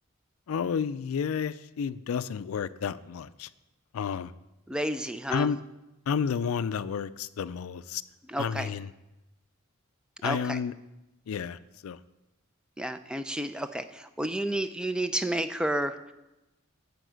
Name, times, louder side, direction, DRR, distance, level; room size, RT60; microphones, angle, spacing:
voice 1, 0.5-3.5 3.9-4.3 5.3-5.6 6.1-8.0 8.4-8.9 10.2-10.7 11.3-12.0, left 6 dB, 80° left, 15 dB, 0.4 m, -31 dB
voice 2, 4.7-5.5 8.3-8.7 10.2-10.6 12.8-16.0, right 1 dB, 5° right, 10 dB, 0.4 m, -31 dB
11.0 x 4.7 x 7.9 m, 0.98 s
head